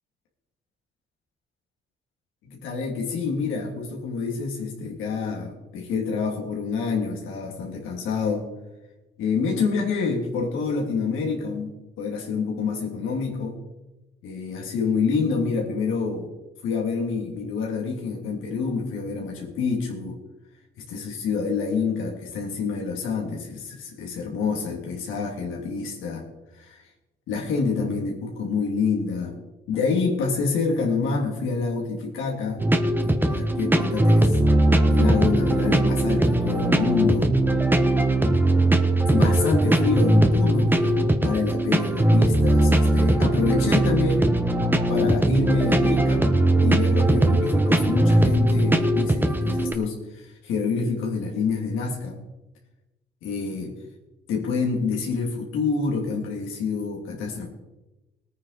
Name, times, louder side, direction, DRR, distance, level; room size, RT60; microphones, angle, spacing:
voice 1, 2.4-8.5 9.2-11.7 12.0-13.6 14.2-16.3 16.6-20.2 20.8-26.2 26.6-26.8 27.3-29.4 29.7-32.6 33.0-34.3 34.9-37.3 39.0-44.3 44.9-46.3 46.6-52.2 53.2-53.8 54.3-57.5, left 5 dB, 90° left, 0 dB, 3.0 m, -27 dB
sound 1, 32.6-49.7, right 1 dB, 10° right, 1.2 m, -20 dB
18.5 x 9.4 x 4.3 m, 1.0 s
cardioid pair, 90°, 20 cm